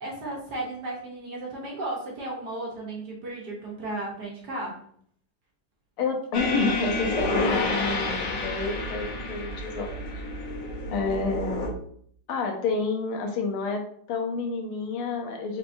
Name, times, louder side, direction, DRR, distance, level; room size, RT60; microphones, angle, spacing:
voice 1, 0.0-4.8, right 2 dB, 60° right, -2 dB, 1.3 m, -34 dB
voice 2, 6.0-10.3 10.9-11.7 12.3-15.6, left 4 dB, 90° left, 2 dB, 1.7 m, -29 dB
sound 1, 6.3-11.7, left 2 dB, 55° left, 1.1 m, -29 dB
4.5 x 3.5 x 2.6 m, 0.63 s
omnidirectional pair, 2.3 m